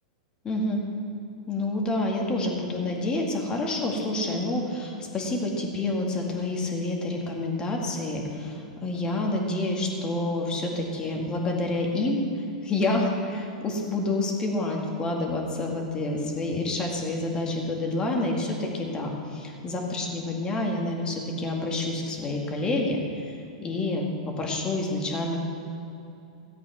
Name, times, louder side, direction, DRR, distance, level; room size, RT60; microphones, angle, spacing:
voice 1, 0.4-0.8 1.5-25.4, left 2 dB, 25° left, 0 dB, 2.0 m, -28 dB
14.0 x 8.3 x 4.7 m, 2.8 s
hypercardioid pair, 125°, 4 cm